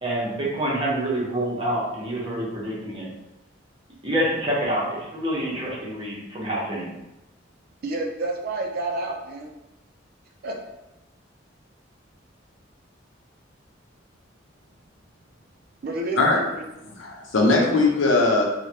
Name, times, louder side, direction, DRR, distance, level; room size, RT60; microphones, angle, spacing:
voice 1, 0.0-3.1 4.0-6.9, right 1 dB, 30° right, -5 dB, 0.8 m, -27 dB
voice 2, 7.8-9.5 10.4-10.5 15.8-16.6, right 2 dB, 55° right, 1 dB, 0.4 m, -29 dB
voice 3, 17.0-18.4, left 3 dB, 90° left, -1 dB, 0.7 m, -19 dB
3.2 x 2.2 x 2.7 m, 0.95 s
head